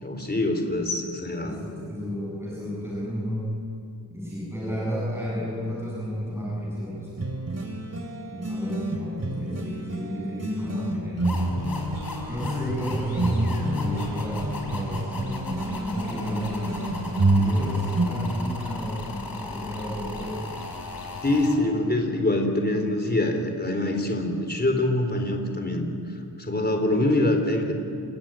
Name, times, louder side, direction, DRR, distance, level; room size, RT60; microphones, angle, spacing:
voice 1, 0.0-1.6 21.2-25.9 26.4-27.7, left 1 dB, 25° left, 4 dB, 3.8 m, -24 dB
voice 2, 1.4-3.5 4.1-7.3 8.3-11.4 12.3-20.4, equal, 5° right, -6 dB, 7.3 m, -32 dB
sound 1, 7.2-18.1, right 2 dB, 35° right, 2.9 m, -28 dB
sound 2, 11.2-21.6, left 3 dB, 55° left, 5.5 m, -37 dB
28.5 x 20.0 x 9.1 m, 2.5 s
wide cardioid pair, 125°, 42 cm